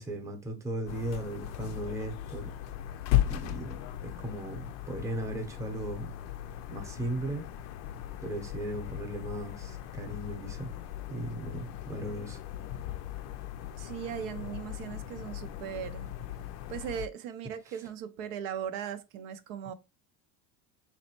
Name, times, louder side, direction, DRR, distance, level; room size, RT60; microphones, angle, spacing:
voice 1, 0.0-2.5 3.3-3.8 4.2-6.1 6.7-7.4 8.2-10.7 11.1-12.4, right 1 dB, 10° right, 0.8 m, -37 dB
sound 1, 0.9-17.1, left 12 dB, 55° left, 0.4 m, -37 dB
voice 2, 13.8-16.1 16.7-19.7, right 9 dB, 80° right, 0.6 m, -38 dB
4.0 x 3.1 x 2.9 m
cardioid pair, 150°, 31 cm